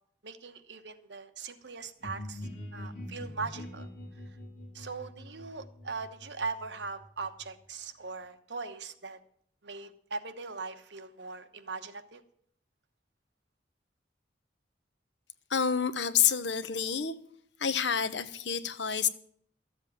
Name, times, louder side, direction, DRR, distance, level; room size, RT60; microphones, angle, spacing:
voice 1, 0.2-3.9 4.7-9.2 9.6-12.2, right 4 dB, 70° right, 9 dB, 1.1 m, -40 dB
sound 1, 2.0-7.6, left 1 dB, 45° left, 3.1 m, -44 dB
voice 2, 15.5-17.1 17.6-19.1, left 7 dB, 70° left, 13 dB, 0.9 m, -28 dB
13.5 x 7.5 x 7.5 m, 0.63 s
head